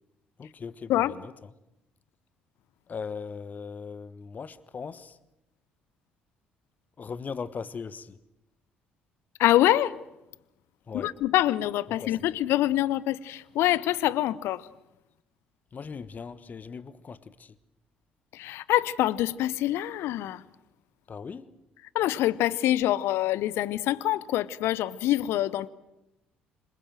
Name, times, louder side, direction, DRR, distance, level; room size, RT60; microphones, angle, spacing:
voice 1, 0.4-1.3 2.9-5.2 7.0-8.2 10.9-11.2 12.0-12.3 15.7-17.6 21.1-21.5, left 5 dB, 35° left, 1.3 m, -39 dB
voice 2, 9.4-10.0 10.9-14.7 18.3-20.4 21.9-25.7, left 14 dB, 60° left, 0.8 m, -25 dB
27.0 x 21.0 x 7.7 m
figure-of-eight pair, 50°, 5 cm